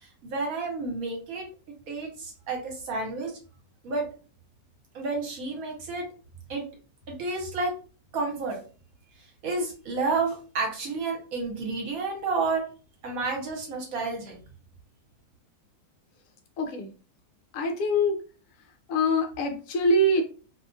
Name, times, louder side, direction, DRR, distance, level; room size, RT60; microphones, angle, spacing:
voice 1, 0.0-1.4 1.9-3.3 3.8-4.0 4.9-6.0 6.5-6.6 7.1-7.7 8.1-8.6 9.4-12.6 13.0-14.3, right 3 dB, 65° right, 1 dB, 1.2 m, -30 dB
voice 2, 16.6-16.9 17.5-18.2 18.9-20.2, equal, 70° left, 4 dB, 0.8 m, -24 dB
2.7 x 2.3 x 2.5 m, 0.37 s
omnidirectional pair, 1.7 m